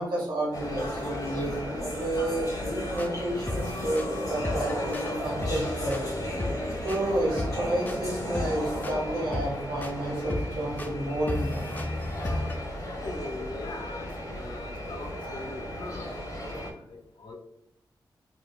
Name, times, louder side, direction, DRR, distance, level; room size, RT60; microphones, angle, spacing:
voice 1, 0.0-6.1 6.8-11.7, right 1 dB, 80° right, -3 dB, 1.4 m, -30 dB
sound 1, 0.5-16.7, left 1 dB, 45° left, 1.2 m, -35 dB
sound 2, 2.6-12.5, left 1 dB, 20° left, 0.4 m, -36 dB
voice 2, 12.9-17.3, left 2 dB, 75° left, 3 dB, 0.7 m, -41 dB
5.1 x 2.6 x 2.2 m, 0.78 s
cardioid pair, 65°, 8 cm